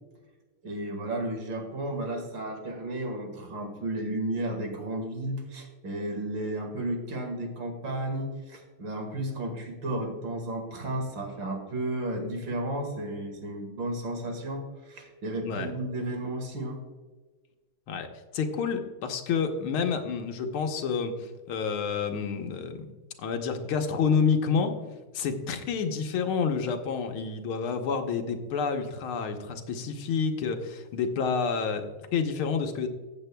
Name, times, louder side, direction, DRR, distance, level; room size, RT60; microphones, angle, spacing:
voice 1, 0.6-16.8, right 1 dB, 60° right, 4 dB, 2.3 m, -33 dB
voice 2, 18.3-22.9 23.2-24.8 25.1-32.9, left 5 dB, 75° left, 6 dB, 1.7 m, -29 dB
14.5 x 7.9 x 2.2 m, 1.3 s
omnidirectional pair, 2.3 m